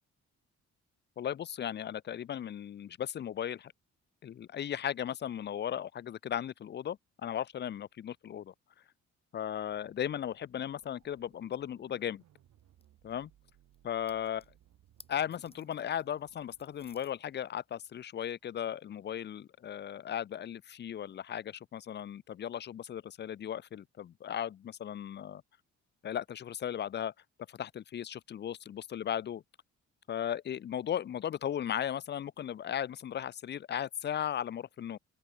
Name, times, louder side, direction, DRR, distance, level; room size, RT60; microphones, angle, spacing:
voice 1, 1.2-3.7 4.2-8.5 9.3-12.2 13.0-13.3 13.8-14.4 15.1-25.4 26.0-27.1 27.5-29.4 30.1-35.0, left 10 dB, 35° left, 0.4 m, -36 dB
sound 1, 9.5-17.1, right 12 dB, 70° right, 1.8 m, -66 dB
sound 2, 10.9-18.1, left 3 dB, 20° left, 2.5 m, -65 dB
open air
cardioid pair, 90°, 30 cm